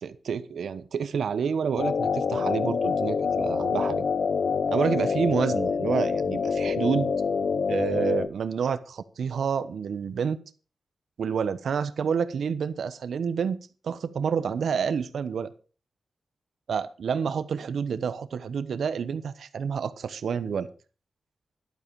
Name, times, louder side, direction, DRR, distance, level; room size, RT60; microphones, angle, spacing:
voice 1, 0.0-4.0 4.7-7.1 7.7-10.4 11.2-15.5 16.7-20.7, right 6 dB, 85° right, 13 dB, 1.0 m, -29 dB
sound 1, 1.8-8.3, left 5 dB, 70° left, 0.8 m, -26 dB
12.5 x 11.5 x 4.8 m, 0.36 s
cardioid pair, 75°, 0 cm